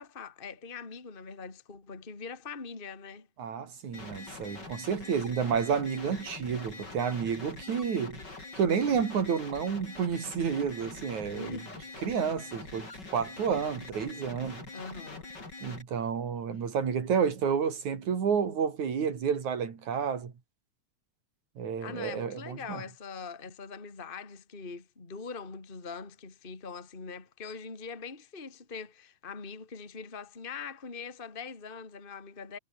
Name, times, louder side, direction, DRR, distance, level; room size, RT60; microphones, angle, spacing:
voice 1, 0.0-3.3 7.7-8.0 11.4-11.9 14.7-15.3 21.8-32.6, left 5 dB, 20° left, 2.4 m, -42 dB
voice 2, 3.4-8.2 8.6-11.6 12.0-14.7 15.6-20.3 21.6-22.8, right 6 dB, 70° right, 4.5 m, -30 dB
sound 1, 3.9-15.8, left 3 dB, 35° left, 5.8 m, -44 dB
omnidirectional pair, 3.5 m